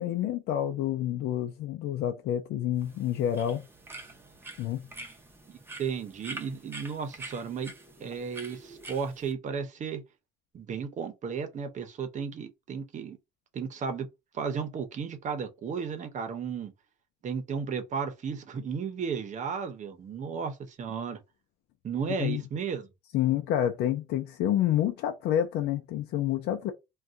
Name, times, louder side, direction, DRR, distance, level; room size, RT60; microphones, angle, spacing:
voice 1, 0.0-3.6 4.6-4.8 22.2-22.4 23.1-26.7, left 11 dB, 80° left, 0.5 m, -28 dB
sound 1, 2.8-9.3, right 2 dB, 15° right, 0.8 m, -46 dB
voice 2, 5.5-7.7 8.0-10.0 10.5-13.2 13.5-14.1 14.3-16.7 17.2-21.2 21.8-22.9, right 6 dB, 45° right, 0.8 m, -34 dB
2.6 x 2.4 x 3.5 m
cardioid pair, 110°, 17 cm